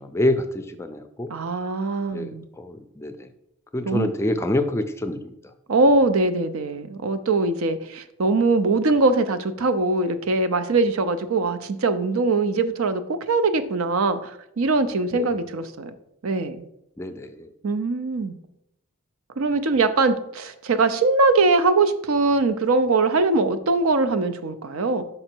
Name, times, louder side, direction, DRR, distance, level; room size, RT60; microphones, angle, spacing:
voice 1, 0.0-1.3 2.1-3.1 3.7-5.2 15.1-15.4 17.0-17.5, left 1 dB, 10° left, 7 dB, 0.3 m, -26 dB
voice 2, 1.3-2.5 3.8-4.1 5.7-15.9 16.2-16.6 17.6-18.4 19.4-25.0, right 3 dB, 70° right, 11 dB, 0.5 m, -22 dB
5.4 x 5.0 x 4.4 m, 0.80 s
head